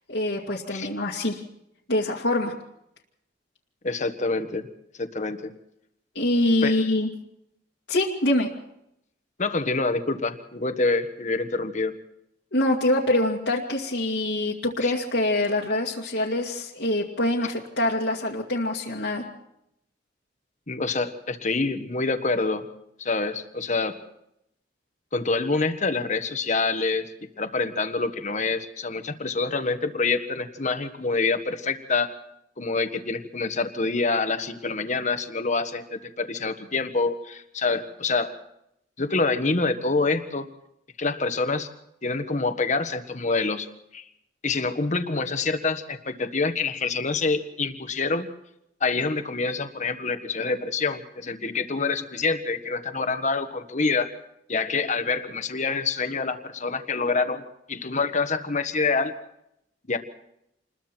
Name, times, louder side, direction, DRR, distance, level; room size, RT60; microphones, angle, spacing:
voice 1, 0.1-1.4 1.9-2.5 6.1-7.1 7.9-8.5 12.5-19.2, left 1 dB, 75° left, -4 dB, 2.2 m, -24 dB
voice 2, 3.8-4.7 5.0-5.4 6.6-6.8 9.4-11.9 14.8-14.9 20.7-22.6 23.0-23.9 25.1-27.1 27.4-32.1 32.6-38.3 39.0-40.4 41.0-41.7 42.0-43.7 43.9-44.0 44.4-48.3 48.8-54.1 54.5-57.4 57.7-59.1 59.9-60.0, left 3 dB, 40° left, 8 dB, 1.5 m, -26 dB
28.0 x 21.0 x 4.5 m, 0.79 s
head